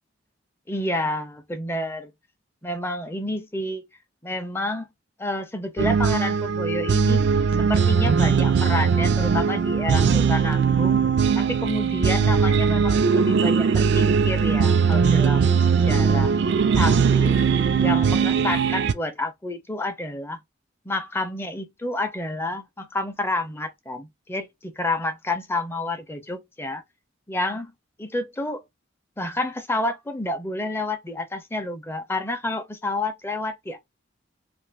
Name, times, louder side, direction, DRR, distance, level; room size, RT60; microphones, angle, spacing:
voice 1, 0.7-2.1 2.6-3.8 4.2-4.9 5.2-7.2 7.6-11.0 11.4-16.3 16.7-17.4 17.8-20.4 20.9-26.8 27.3-27.7 28.0-28.6 29.2-33.8, left 2 dB, 10° left, 0.4 m, -29 dB
sound 1, 5.8-18.9, right 6 dB, 55° right, 0.3 m, -20 dB
2.5 x 2.5 x 3.3 m
head